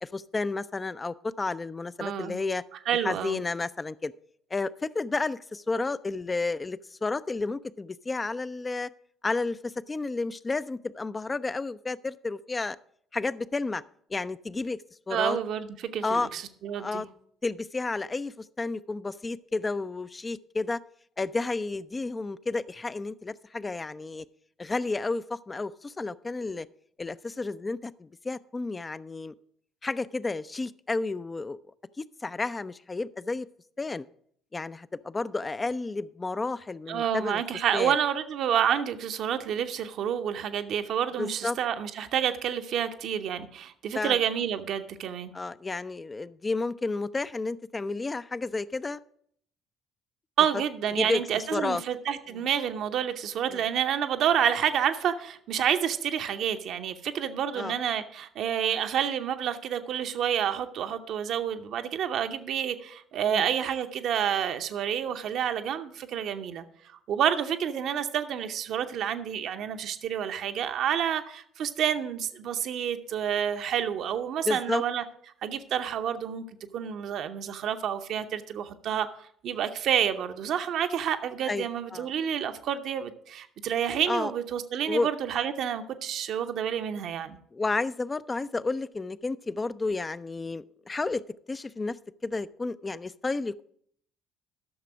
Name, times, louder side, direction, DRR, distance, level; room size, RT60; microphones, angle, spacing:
voice 1, 0.0-2.6 3.0-4.1 4.5-8.9 9.2-12.8 13.1-13.8 14.1-14.8 15.1-15.4 16.0-16.3 16.7-17.1 17.4-20.8 21.2-24.2 24.6-26.7 27.0-29.3 29.8-31.6 32.0-33.5 33.8-34.1 34.5-37.4 37.7-38.0 41.2-41.6 43.9-44.2 45.3-49.0 51.0-51.2 51.5-51.8 52.3-52.4 53.5-53.6 57.5-57.7 63.3-63.5 74.5-74.8 81.5-82.1 84.1-84.3 84.9-85.1 87.5-91.2 91.5-92.0 92.2-93.6, left 3 dB, 25° left, 17 dB, 0.4 m, -31 dB
voice 2, 2.0-2.4 2.9-3.4 15.1-17.0 36.9-45.3 50.4-66.6 67.1-75.0 75.4-76.4 76.7-79.1 79.4-87.4, right 9 dB, 55° right, 8 dB, 0.7 m, -29 dB
11.5 x 6.6 x 5.0 m, 0.65 s
figure-of-eight pair, 50°, 0 cm